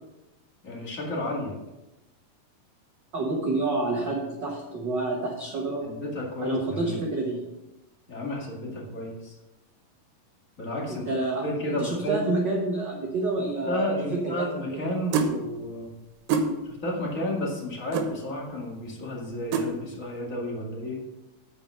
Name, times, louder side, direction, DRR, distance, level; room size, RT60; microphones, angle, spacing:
voice 1, 0.6-1.6 5.8-7.0 8.1-9.4 10.6-12.2 13.4-15.9 16.6-21.0, left 1 dB, 30° left, -2 dB, 1.9 m, -32 dB
voice 2, 3.1-5.9 6.4-7.4 10.9-14.4, right 2 dB, 50° right, -2 dB, 1.4 m, -28 dB
sound 1, 15.1-15.3 16.3-16.5 17.9-18.1 19.5-19.7, right 5 dB, 85° right, 2.7 m, -24 dB
8.8 x 7.0 x 5.7 m, 1.0 s
omnidirectional pair, 3.9 m